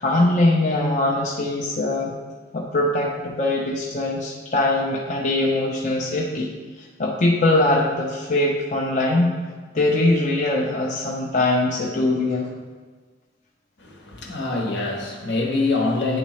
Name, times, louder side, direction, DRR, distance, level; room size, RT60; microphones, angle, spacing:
voice 1, 0.0-2.1 2.5-6.5 6.8-9.4 9.7-12.5, left 2 dB, 40° left, -3 dB, 0.6 m, -22 dB
voice 2, 13.8-16.2, left 3 dB, 70° left, 0 dB, 1.1 m, -24 dB
9.3 x 3.7 x 3.1 m, 1.4 s
head